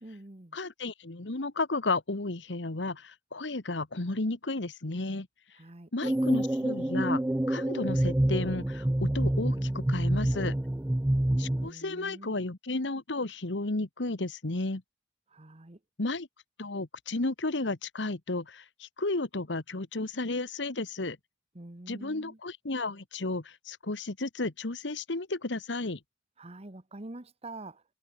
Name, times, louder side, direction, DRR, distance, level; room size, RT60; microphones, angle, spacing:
voice 1, 0.0-0.6 5.6-5.9 11.6-12.5 15.3-15.8 21.5-22.4 26.4-27.8, right 2 dB, 35° right, 1.4 m, -46 dB
voice 2, 0.5-5.3 5.9-7.2 7.5-10.5 11.4-14.8 16.0-16.3 16.6-21.2 21.9-26.0, left 2 dB, 85° left, 1.5 m, -33 dB
sound 1, 6.0-11.7, right 1 dB, 10° right, 0.4 m, -27 dB
head